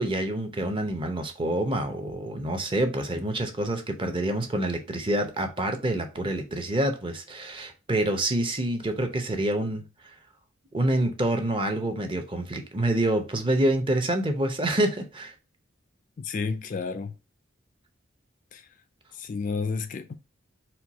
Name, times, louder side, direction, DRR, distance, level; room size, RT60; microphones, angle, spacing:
voice 1, 0.0-9.8 10.7-15.3, right 1 dB, 25° right, 0.6 m, -27 dB
voice 2, 16.2-17.1 18.5-18.6 19.1-20.1, left 4 dB, 40° left, 0.3 m, -31 dB
4.4 x 2.3 x 3.9 m
head